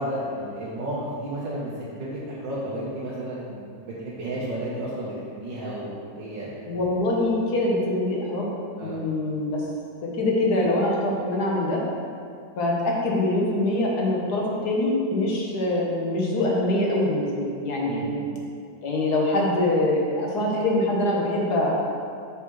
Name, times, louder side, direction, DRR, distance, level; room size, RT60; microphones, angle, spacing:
voice 1, 0.0-6.6 8.8-9.0 17.8-18.3, right 1 dB, 75° right, -8 dB, 1.7 m, -32 dB
voice 2, 6.7-8.5 8.8-9.6 10.0-11.8 12.6-18.1 18.8-21.7, left 1 dB, 60° left, -2 dB, 1.5 m, -24 dB
6.9 x 6.2 x 3.1 m, 2.3 s
omnidirectional pair, 2.0 m